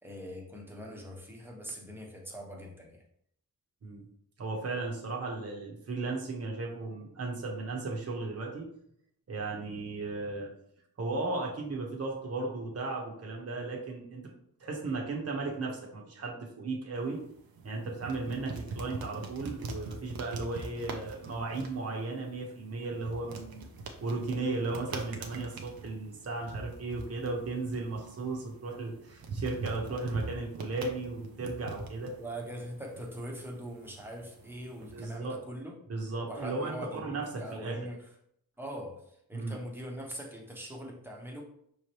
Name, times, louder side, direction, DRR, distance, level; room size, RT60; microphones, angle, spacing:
voice 1, 0.0-3.0 32.2-35.7 36.3-38.1 38.6-41.4, equal, 5° right, -1 dB, 0.9 m, -42 dB
voice 2, 4.4-8.7 9.3-10.5 11.0-14.2 14.6-17.2 17.6-23.7 24.0-32.1 34.9-35.3 35.9-37.2 37.5-37.8 39.3-39.6, right 3 dB, 40° right, -1 dB, 1.0 m, -35 dB
sound 1, 17.0-35.2, right 3 dB, 75° right, 0.7 m, -43 dB
5.7 x 3.2 x 2.9 m, 0.70 s
wide cardioid pair, 140°, 37 cm